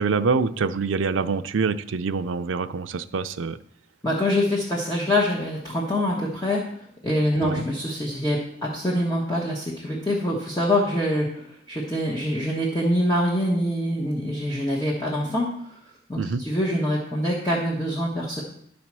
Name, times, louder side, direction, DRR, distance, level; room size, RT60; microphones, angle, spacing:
voice 1, 0.0-3.6 7.4-7.6 16.2-16.4, right 4 dB, 90° right, 10 dB, 0.5 m, -25 dB
voice 2, 4.0-6.6 7.0-15.8 16.1-18.4, left 1 dB, 20° left, -5 dB, 1.3 m, -25 dB
11.5 x 4.2 x 6.1 m, 0.69 s
head